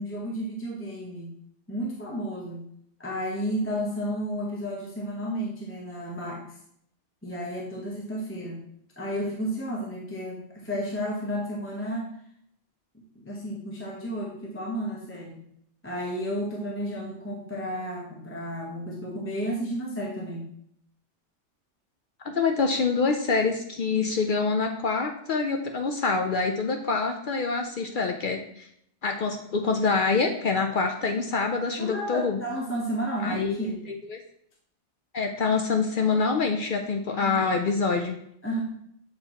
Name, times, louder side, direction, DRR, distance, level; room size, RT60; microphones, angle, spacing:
voice 1, 0.0-1.3 1.7-2.6 3.0-6.4 7.2-8.6 9.0-12.1 13.1-15.4 15.8-20.4 31.8-33.8 37.2-37.6 38.4-38.6, equal, 10° left, -3 dB, 0.8 m, -32 dB
voice 2, 22.2-28.7 29.0-32.4 33.2-34.2 35.1-38.2, left 4 dB, 60° left, 3 dB, 0.6 m, -26 dB
7.5 x 4.5 x 2.9 m, 0.71 s
omnidirectional pair, 1.2 m